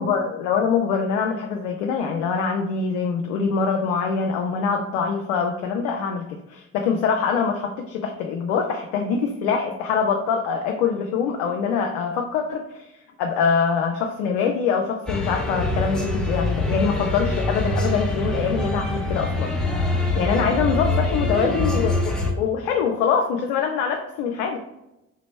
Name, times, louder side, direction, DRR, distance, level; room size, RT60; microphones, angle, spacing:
voice 1, 0.0-6.2 6.5-12.9 13.2-19.5 20.1-24.6, left 6 dB, 75° left, 2 dB, 0.5 m, -24 dB
sound 1, 15.1-22.3, left 2 dB, ahead, 0.9 m, -24 dB
3.3 x 2.9 x 3.2 m, 0.93 s
figure-of-eight pair, 40°, 36 cm